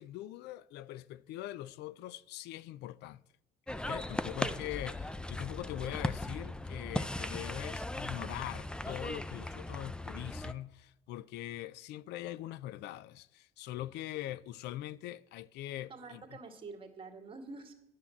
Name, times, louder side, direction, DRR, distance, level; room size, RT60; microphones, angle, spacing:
voice 1, 0.0-3.2 3.8-16.2, left 14 dB, 80° left, 0.4 m, -42 dB
sound 1, 3.7-10.5, left 1 dB, 5° left, 0.4 m, -38 dB
voice 2, 15.9-17.7, right 4 dB, 30° right, 2.0 m, -47 dB
9.6 x 7.4 x 7.0 m
cardioid pair, 110°, 17 cm